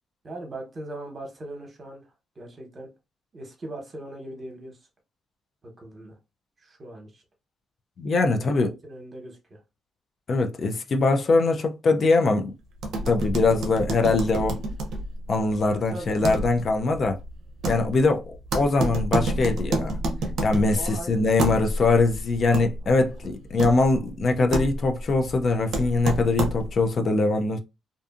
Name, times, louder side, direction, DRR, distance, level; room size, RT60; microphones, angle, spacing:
voice 1, 0.2-2.1 2.3-2.9 3.3-4.9 5.6-6.1 6.6-7.2 8.4-9.6 15.7-16.4 20.7-21.2 22.8-23.3, right 1 dB, 35° right, 1.0 m, -39 dB
voice 2, 8.0-8.7 10.3-12.5 13.1-14.6 15.3-17.2 17.7-19.9 20.4-27.6, left 3 dB, 50° left, 0.4 m, -22 dB
sound 1, 12.8-26.9, right 1 dB, 70° right, 0.5 m, -30 dB
2.5 x 2.4 x 2.4 m
cardioid pair, 90°, 0 cm